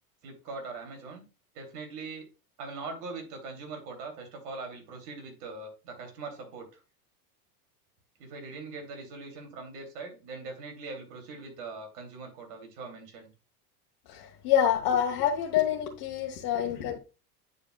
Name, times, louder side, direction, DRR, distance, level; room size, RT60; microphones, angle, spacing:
voice 1, 0.2-1.2 1.5-2.3 2.6-6.7 8.2-13.3, right 3 dB, 75° right, 3 dB, 2.9 m, -41 dB
voice 2, 14.1-17.0, left 9 dB, 50° left, 0 dB, 1.3 m, -27 dB
9.4 x 5.0 x 2.3 m, 0.30 s
hypercardioid pair, 105°, 47 cm